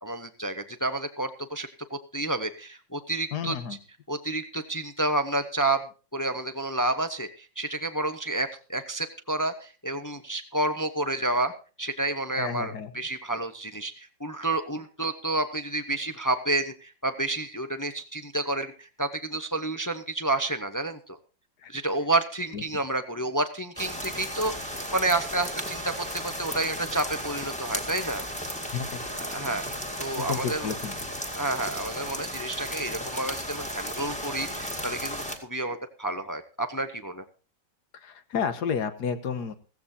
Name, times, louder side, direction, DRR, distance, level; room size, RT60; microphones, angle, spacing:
voice 1, 0.0-3.5 4.1-5.8 6.1-11.5 11.8-21.2 21.7-28.2 29.3-29.6 30.0-30.7 31.4-37.2, right 2 dB, 20° left, 8 dB, 0.5 m, -30 dB
voice 2, 3.3-3.8 12.4-12.9 21.6-21.7 22.5-22.6 28.7-29.2 30.2-31.0 37.9-39.5, left 7 dB, 60° left, 10 dB, 1.6 m, -31 dB
sound 1, 23.8-35.4, equal, 5° left, 2.0 m, -35 dB
16.0 x 15.5 x 2.8 m, 0.35 s
omnidirectional pair, 2.0 m